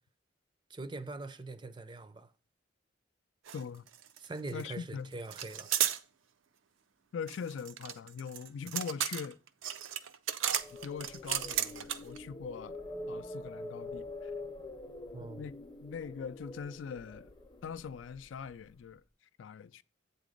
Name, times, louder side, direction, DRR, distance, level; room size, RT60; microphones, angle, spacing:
voice 1, 0.7-2.3 4.2-5.7 15.1-15.5, right 2 dB, 25° right, 0.4 m, -42 dB
voice 2, 3.5-3.9 4.5-5.1 7.1-9.4 10.8-12.8 13.1-14.3 15.2-17.3 17.6-19.0 19.4-19.8, left 6 dB, 75° left, 0.3 m, -42 dB
sound 1, 3.5-3.6 3.9-4.6 5.3-6.0 7.3-12.2, right 10 dB, 85° right, 0.5 m, -34 dB
sound 2, 10.5-18.5, left 2 dB, 25° left, 0.6 m, -45 dB
8.3 x 3.9 x 5.1 m
head